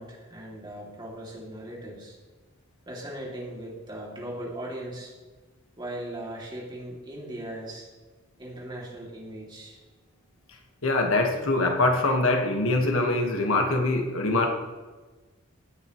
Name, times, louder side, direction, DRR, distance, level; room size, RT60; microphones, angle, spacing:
voice 1, 0.0-2.2 2.9-5.1 5.8-7.9 8.4-9.8, right 1 dB, 20° right, -3 dB, 2.6 m, -38 dB
voice 2, 10.8-14.5, left 2 dB, 80° left, 2 dB, 1.5 m, -23 dB
16.5 x 9.2 x 3.1 m, 1.3 s
head